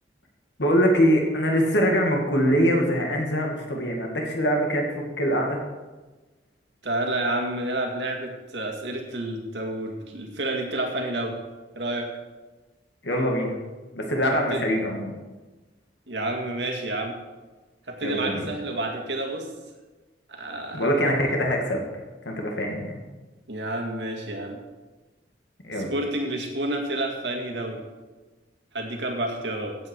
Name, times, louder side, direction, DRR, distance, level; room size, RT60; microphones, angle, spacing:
voice 1, 0.6-5.6 13.0-13.6 14.0-15.1 18.0-18.5 20.7-21.8 22.3-23.0 25.6-25.9, equal, 70° left, 1 dB, 2.2 m, -23 dB
voice 2, 6.8-11.4 11.8-12.1 14.5-14.6 16.1-17.1 17.9-19.5 20.3-20.9 23.5-24.6 25.8-27.8 28.7-29.8, right 1 dB, 70° right, 2 dB, 2.2 m, -29 dB
15.0 x 8.5 x 4.7 m, 1.2 s
head